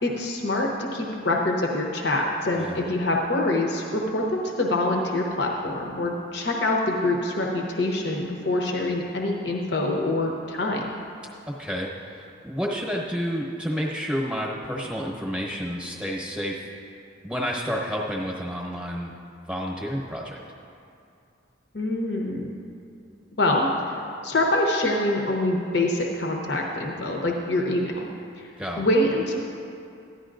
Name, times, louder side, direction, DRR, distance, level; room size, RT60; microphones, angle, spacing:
voice 1, 0.0-10.9 21.7-22.5 23.4-23.9 24.2-27.9 28.8-29.4, left 1 dB, 60° left, 0 dB, 0.8 m, -25 dB
voice 2, 11.6-16.6 17.2-19.1 19.5-20.4 28.6-28.9, equal, 5° right, -3 dB, 1.0 m, -30 dB
14.5 x 11.0 x 2.5 m, 2.6 s
head